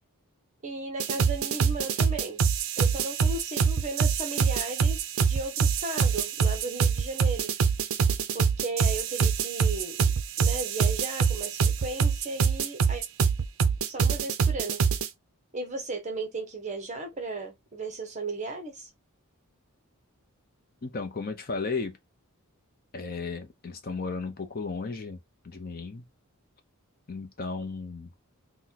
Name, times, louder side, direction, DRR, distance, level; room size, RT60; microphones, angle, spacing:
voice 1, 0.6-2.4 2.8-7.5 8.3-10.1 10.4-13.0 13.9-14.8 15.5-18.9, right 2 dB, 30° right, 0.9 m, -35 dB
sound 1, 1.0-15.1, right 6 dB, 65° right, 0.5 m, -25 dB
voice 2, 20.8-22.0 22.9-25.2 25.4-26.0 27.1-28.1, left 4 dB, 40° left, 0.6 m, -34 dB
2.8 x 2.2 x 4.0 m
head